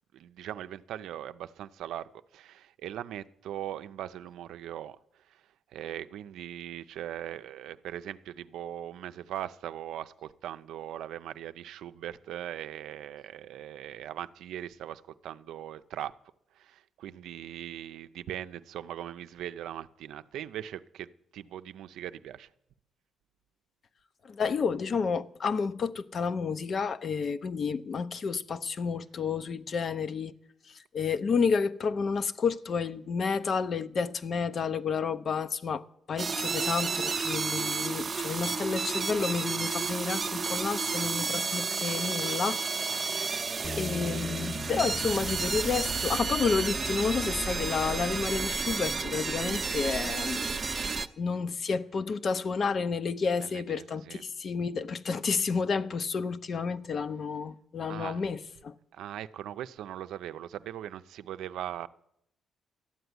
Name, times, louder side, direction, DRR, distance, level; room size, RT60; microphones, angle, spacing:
voice 1, 0.1-5.4 5.7-16.1 16.5-22.5 42.9-43.3 53.4-54.2 57.9-58.2 58.9-61.9, right 11 dB, 80° right, 0.5 m, -40 dB
voice 2, 24.2-30.3 30.7-42.6 43.0-43.4 43.8-58.7, left 5 dB, 50° left, 0.7 m, -31 dB
sound 1, 36.2-51.1, right 5 dB, 35° right, 0.7 m, -31 dB
Bass guitar, 43.6-49.9, left 3 dB, 5° left, 0.7 m, -44 dB
12.5 x 8.0 x 9.5 m
cardioid pair, 90°, 0 cm